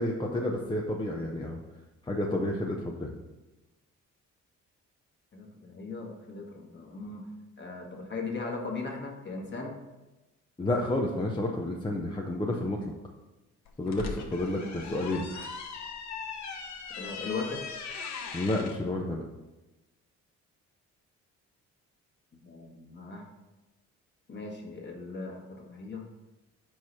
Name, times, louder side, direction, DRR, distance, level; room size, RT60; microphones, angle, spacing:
voice 1, 0.0-1.6 2.1-3.1 10.6-12.8 13.8-15.5 18.3-19.2, left 1 dB, 15° left, -1 dB, 0.7 m, -30 dB
voice 2, 5.3-7.3 7.6-9.8 14.5-15.0 17.0-17.6 22.4-23.3 24.3-26.0, left 3 dB, 35° left, 0 dB, 1.5 m, -38 dB
sound 1, 13.7-18.8, left 5 dB, 65° left, 0.9 m, -39 dB
4.7 x 4.7 x 5.6 m, 1.1 s
cardioid pair, 90°, 30 cm